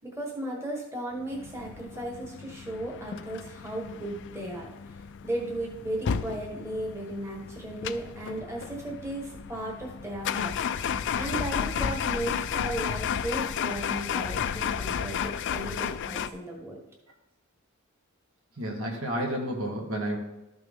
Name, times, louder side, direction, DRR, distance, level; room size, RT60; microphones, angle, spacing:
voice 1, 0.0-4.7 5.2-16.8, right 1 dB, 10° right, -1 dB, 1.4 m, -36 dB
sound 1, 1.3-16.3, left 7 dB, 55° left, 0.4 m, -33 dB
voice 2, 18.6-20.2, right 1 dB, 65° right, 0 dB, 1.6 m, -31 dB
12.5 x 6.0 x 3.6 m, 0.96 s
head